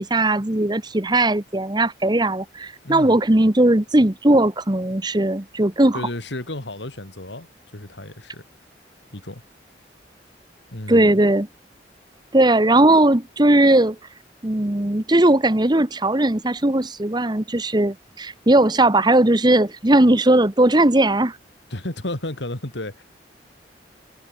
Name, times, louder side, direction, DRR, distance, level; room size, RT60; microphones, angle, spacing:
voice 1, 0.0-6.0 10.9-11.5 12.3-14.0 14.4-21.4, right 1 dB, 25° right, 1.2 m, -18 dB
voice 2, 2.8-3.2 5.9-8.4 9.1-9.4 10.7-11.2 21.7-23.0, left 1 dB, 85° left, 3.2 m, -32 dB
head